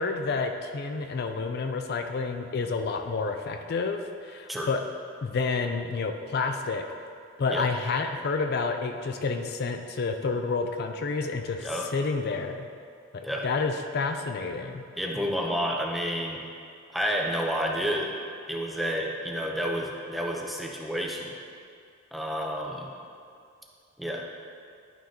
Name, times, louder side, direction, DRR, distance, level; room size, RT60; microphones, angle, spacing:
voice 1, 0.0-4.8 5.2-6.8 7.4-12.7 13.1-14.9, left 4 dB, 55° left, 5 dB, 0.4 m, -29 dB
voice 2, 15.0-16.5 16.9-18.1 18.5-21.4 22.1-22.9 24.0-24.3, equal, ahead, -1 dB, 0.6 m, -30 dB
11.0 x 6.1 x 2.8 m, 2.3 s
head